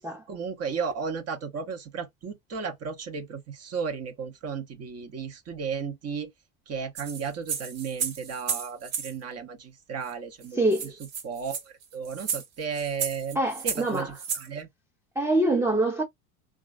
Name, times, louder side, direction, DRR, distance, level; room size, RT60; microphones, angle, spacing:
voice 1, 0.3-6.3 6.7-10.6 11.2-13.4 13.6-14.7, right 6 dB, 35° right, 0.8 m, -34 dB
sound 1, 7.0-9.1 10.1-10.2 10.4-10.5 10.7-14.5, right 7 dB, 70° right, 1.4 m, -33 dB
voice 2, 10.6-10.9 13.4-14.1 15.2-16.0, right 2 dB, 5° right, 0.6 m, -24 dB
3.0 x 2.4 x 2.5 m
supercardioid pair, 95°, 41 cm